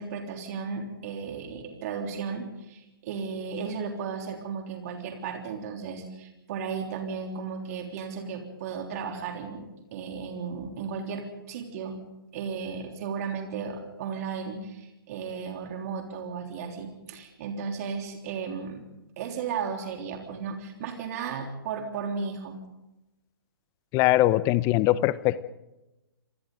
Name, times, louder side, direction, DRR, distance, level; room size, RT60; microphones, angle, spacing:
voice 1, 0.0-12.0 12.3-18.8 19.2-22.6, right 6 dB, 40° right, 3 dB, 3.4 m, -35 dB
voice 2, 23.9-25.4, left 16 dB, 25° left, 17 dB, 0.9 m, -22 dB
27.0 x 27.0 x 3.9 m, 0.94 s
figure-of-eight pair, 130°, 13 cm